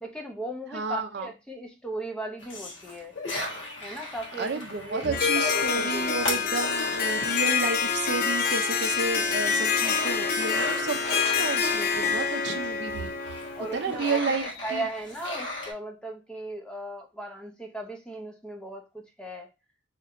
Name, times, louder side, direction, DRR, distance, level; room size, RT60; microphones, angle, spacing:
voice 1, 0.0-3.1 3.8-4.5 4.8-6.5 13.6-14.4 14.6-19.5, right 1 dB, 5° left, 2 dB, 0.6 m, -37 dB
voice 2, 0.7-1.3 4.4-11.0 11.2-13.1 13.7-14.9, right 4 dB, 60° right, 6 dB, 0.5 m, -31 dB
sound 1, 2.4-8.3 8.7-15.7, left 1 dB, 75° left, 1.2 m, -37 dB
Harp, 5.1-13.9, left 6 dB, 50° left, 0.6 m, -27 dB
2.8 x 2.6 x 4.3 m, 0.27 s
head